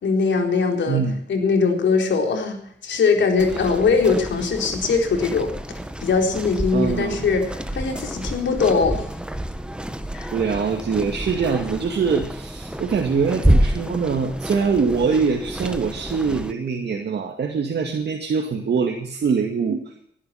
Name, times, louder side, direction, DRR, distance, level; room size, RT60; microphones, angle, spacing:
voice 1, 0.0-1.0 1.3-5.5 6.0-9.0 10.1-10.3, left 4 dB, 85° left, 3 dB, 4.1 m, -21 dB
voice 2, 0.9-1.2 3.6-3.7 6.7-7.2 10.3-19.8, right 5 dB, 65° right, 2 dB, 2.3 m, -23 dB
sound 1, 3.4-16.5, right 1 dB, 5° right, 1.5 m, -28 dB
20.5 x 11.5 x 5.9 m, 0.66 s
wide cardioid pair, 105°, 19 cm